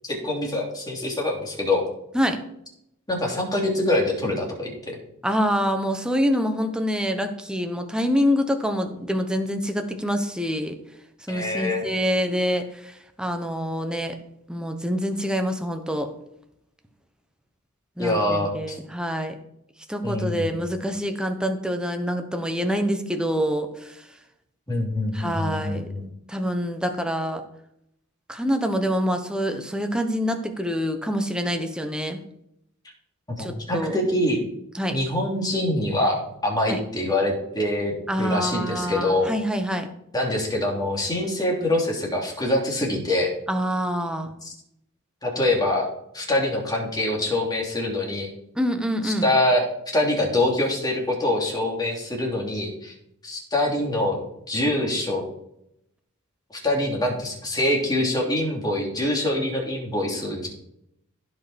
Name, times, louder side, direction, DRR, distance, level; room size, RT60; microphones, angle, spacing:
voice 1, 0.0-1.8 3.1-5.0 11.3-11.8 18.0-18.7 20.0-20.6 24.7-26.0 33.4-34.4 34.9-39.3 40.1-43.3 44.4-44.5 45.2-45.9 46.1-48.3 49.0-49.6 49.9-52.9 53.2-55.2 56.6-60.5, left 1 dB, 20° left, -2 dB, 2.9 m, -24 dB
voice 2, 5.2-10.8 11.3-14.1 14.5-16.1 18.0-19.3 19.9-24.0 25.1-25.9 26.3-27.4 28.3-32.2 33.4-33.9 34.7-35.0 36.7-36.8 38.1-39.9 43.5-44.3 48.5-49.3, equal, 5° right, 5 dB, 1.0 m, -26 dB
15.5 x 5.4 x 4.3 m, 0.77 s
head